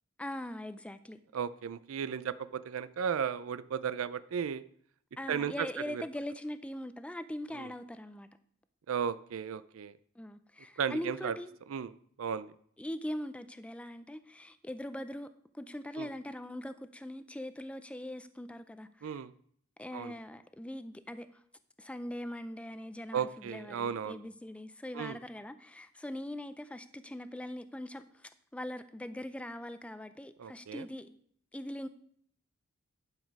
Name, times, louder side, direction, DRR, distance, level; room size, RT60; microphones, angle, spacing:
voice 1, 0.2-1.2 5.2-8.3 10.2-11.5 12.8-15.3 15.5-19.2 19.8-21.4 21.8-31.2 31.5-31.9, left 1 dB, 5° left, 0.4 m, -41 dB
voice 2, 1.3-4.6 5.3-6.0 7.5-7.7 8.9-9.9 10.8-11.4 11.7-11.9 12.2-12.5 16.0-16.1 19.0-19.3 19.9-20.2 23.1-24.2 24.9-25.2 30.4-30.9, right 7 dB, 85° right, 0.4 m, -35 dB
11.0 x 5.0 x 5.3 m
head